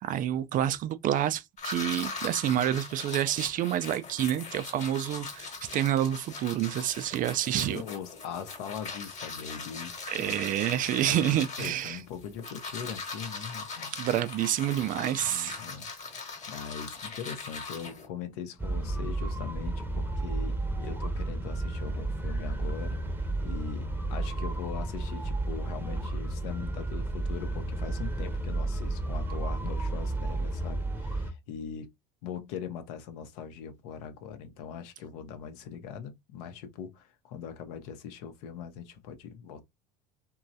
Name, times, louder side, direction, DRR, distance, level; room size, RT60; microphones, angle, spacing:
voice 1, 0.0-7.8 10.1-12.0 13.9-15.6, right 11 dB, 40° right, 0.4 m, -28 dB
sound 1, 1.6-18.1, left 4 dB, 35° left, 1.2 m, -40 dB
voice 2, 7.5-9.9 10.3-10.4 11.0-13.9 15.2-31.9 32.2-39.6, left 7 dB, 65° left, 0.7 m, -41 dB
sound 2, 18.6-31.3, right 2 dB, 10° right, 0.8 m, -32 dB
3.0 x 2.3 x 2.6 m
hypercardioid pair, 70°, 21 cm